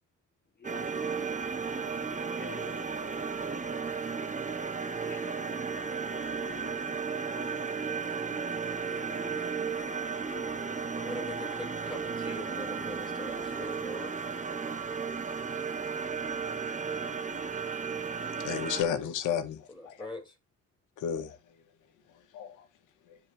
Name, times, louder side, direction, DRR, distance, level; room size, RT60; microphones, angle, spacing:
voice 1, 0.6-1.1 2.4-2.9 5.0-5.7 6.1-8.6 8.9-9.9 10.3-10.8, left 6 dB, 35° left, 3.3 m, -51 dB
sound 1, 0.6-18.8, right 5 dB, 25° right, 1.8 m, -34 dB
voice 2, 10.6-14.3 19.7-20.4, left 2 dB, 15° left, 6.2 m, -43 dB
voice 3, 18.4-20.0 21.0-21.4 22.3-22.7, left 8 dB, 85° left, 2.0 m, -32 dB
13.5 x 4.7 x 3.6 m
cardioid pair, 90°, 30 cm